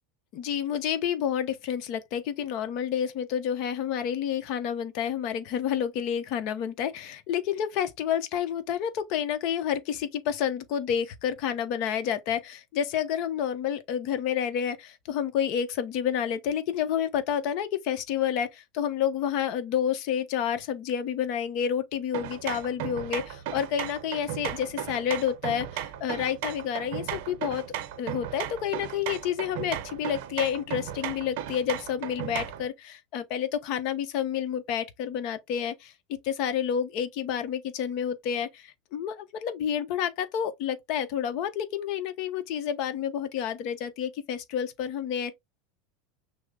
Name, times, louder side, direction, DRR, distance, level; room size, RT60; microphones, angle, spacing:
voice 1, 0.3-27.6 28.0-35.9 36.2-45.3, left 9 dB, 50° left, 0.8 m, -29 dB
sound 1, 22.1-32.7, right 11 dB, 65° right, 0.6 m, -36 dB
6.2 x 2.1 x 3.7 m
supercardioid pair, 155°, 0 cm